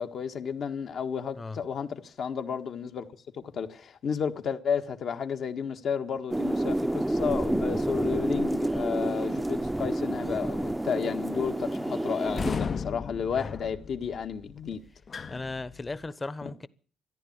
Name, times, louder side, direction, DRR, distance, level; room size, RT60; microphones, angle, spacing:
voice 1, 0.0-3.1 3.3-14.8, left 7 dB, 60° left, 1.6 m, -32 dB
sound 1, 6.3-12.6, right 1 dB, 10° right, 0.7 m, -29 dB
sound 2, 12.2-16.1, left 5 dB, 40° left, 0.7 m, -36 dB
voice 2, 15.3-16.7, left 3 dB, 25° left, 1.0 m, -36 dB
14.0 x 11.0 x 8.8 m
cardioid pair, 90°, 0 cm